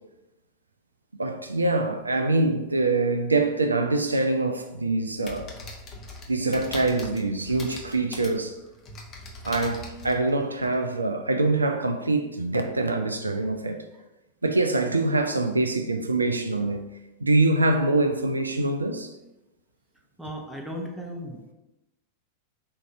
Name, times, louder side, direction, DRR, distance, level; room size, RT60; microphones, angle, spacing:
voice 1, 1.2-5.5 6.3-8.6 9.4-13.8 14.4-16.9 17.2-19.1, right 2 dB, 80° right, 0.3 m, -24 dB
sound 1, 5.2-10.8, left 2 dB, 30° left, 0.8 m, -41 dB
voice 2, 20.2-21.5, equal, 5° right, 0.7 m, -36 dB
3.7 x 2.7 x 4.4 m
figure-of-eight pair, 90°, 0 cm